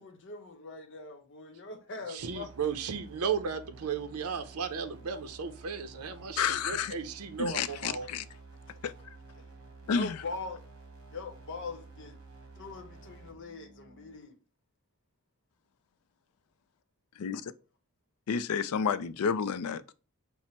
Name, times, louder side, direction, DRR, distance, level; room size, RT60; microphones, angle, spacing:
voice 1, 0.0-2.5 9.3-9.4 9.8-10.6 11.1-12.1 12.6-14.4, left 3 dB, 55° left, 0.8 m, -42 dB
voice 2, 2.1-8.1, right 6 dB, 80° right, 0.6 m, -35 dB
sound 1, 2.2-14.2, right 3 dB, 55° right, 1.3 m, -51 dB
voice 3, 6.4-6.9 7.4-8.2 8.8-8.9 9.9-10.2 17.2-17.5 18.3-19.9, left 6 dB, 75° left, 0.4 m, -30 dB
5.7 x 2.1 x 4.3 m
head